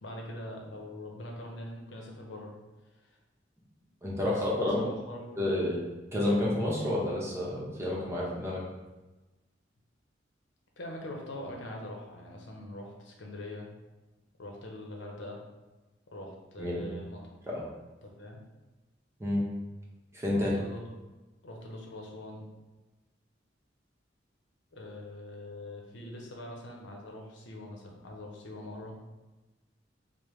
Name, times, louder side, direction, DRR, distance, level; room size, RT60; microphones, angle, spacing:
voice 1, 0.0-2.5 3.0-3.1 4.1-5.6 10.8-13.7 14.4-15.4 16.1-17.2 18.0-18.4 20.3-20.8 21.4-22.5 24.7-29.0, left 1 dB, 85° left, 0 dB, 0.7 m, -43 dB
voice 2, 4.0-4.8 5.4-5.8 6.1-8.6 16.6-16.8 17.5-17.6 19.2-19.4 20.1-20.5, left 1 dB, 15° right, -5 dB, 0.8 m, -29 dB
5.1 x 2.1 x 3.1 m, 1.1 s
head